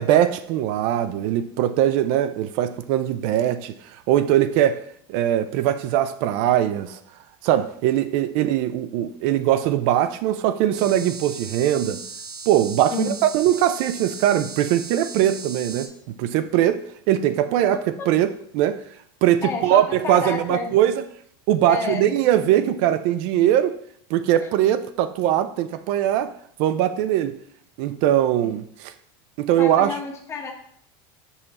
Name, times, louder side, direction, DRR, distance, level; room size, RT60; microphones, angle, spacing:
voice 1, 0.0-4.8 5.1-7.0 7.4-12.0 12.5-18.8 19.2-21.0 21.5-23.8 24.1-26.3 26.6-27.4 27.8-28.9 29.4-29.9, right 11 dB, 55° right, 0.4 m, -21 dB
sound 1, 10.7-15.9, right 4 dB, 80° right, 1.9 m, -37 dB
voice 2, 12.9-13.3 17.7-18.1 19.4-20.8 21.6-22.1 24.4-24.5 28.6-28.7 29.6-30.5, left 4 dB, 20° left, 1.0 m, -30 dB
5.9 x 5.5 x 4.1 m
supercardioid pair, 155°, 12 cm